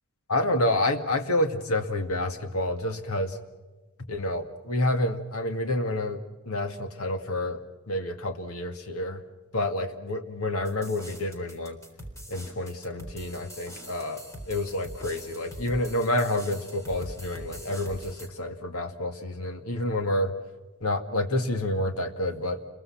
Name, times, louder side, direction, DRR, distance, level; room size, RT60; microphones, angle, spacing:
voice 1, 0.3-3.4 4.1-6.2 6.5-7.6 7.9-9.2 9.5-11.8 12.3-20.3 20.8-22.6, left 1 dB, 75° left, 7 dB, 2.1 m, -28 dB
sound 1, 10.7-18.3, equal, 15° left, 3.9 m, -43 dB
29.5 x 23.0 x 5.9 m, 1.2 s
head